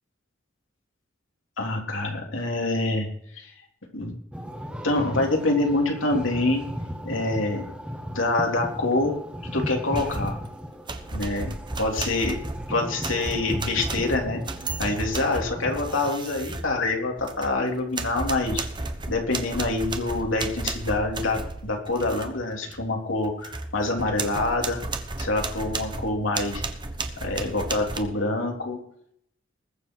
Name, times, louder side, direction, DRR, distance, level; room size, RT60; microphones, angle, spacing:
voice 1, 1.6-3.1 3.3-3.5 3.9-4.1 4.8-6.6 7.0-7.6 8.1-9.1 9.4-10.4 11.1-12.4 12.7-14.4 14.8-18.6 19.1-24.8 25.2-26.6 27.2-28.8, left 2 dB, 85° left, 1 dB, 3.4 m, -26 dB
sound 1, 4.3-16.1, equal, 5° right, 1.5 m, -36 dB
sound 2, 9.9-10.5 10.9-17.6 17.9-22.3 22.7-22.8 23.2-28.0, right 3 dB, 25° right, 1.1 m, -33 dB
20.5 x 7.1 x 4.7 m, 0.69 s
head